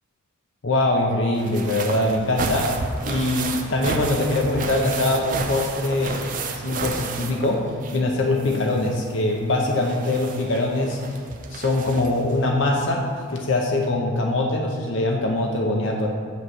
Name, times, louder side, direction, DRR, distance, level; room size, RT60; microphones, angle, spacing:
voice 1, 0.6-2.7 3.0-6.2 6.5-11.0 11.5-16.1, left 2 dB, 65° left, 0 dB, 0.6 m, -23 dB
sound 1, 1.3-8.1 8.4-12.3 13.4-13.5 13.8-13.9, right 3 dB, 40° right, 0.5 m, -32 dB
7.8 x 3.1 x 6.2 m, 2.2 s
head